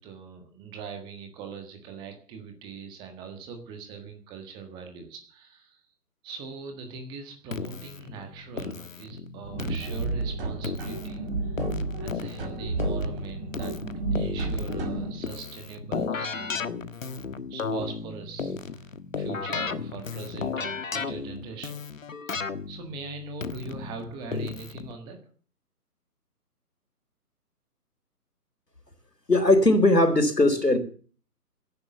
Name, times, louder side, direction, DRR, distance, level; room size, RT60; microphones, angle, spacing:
voice 1, 0.0-5.8 6.2-11.7 12.0-13.8 14.1-16.8 17.5-18.8 19.2-21.8 22.3-25.2, right 5 dB, 10° right, 5 dB, 1.6 m, -41 dB
Keyboard (musical), 7.5-24.9, left 5 dB, 55° left, 1.5 m, -35 dB
sound 1, 9.4-15.1, right 2 dB, 35° right, 6.1 m, -31 dB
voice 2, 29.3-30.8, left 2 dB, 90° left, 9 dB, 3.9 m, -19 dB
17.0 x 10.5 x 7.1 m, 0.43 s
figure-of-eight pair, 140°, 47 cm